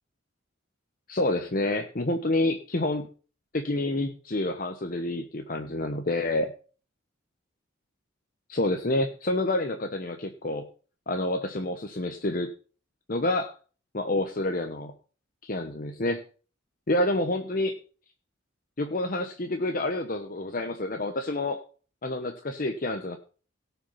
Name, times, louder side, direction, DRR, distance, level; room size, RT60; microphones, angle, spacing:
voice 1, 1.1-3.1 3.5-6.5 8.5-10.7 11.1-12.5 13.1-13.5 13.9-14.9 15.4-16.2 16.9-17.8 18.8-21.6 22.0-23.2, left 2 dB, 45° left, 6 dB, 0.9 m, -28 dB
17.5 x 5.8 x 5.7 m, 0.39 s
head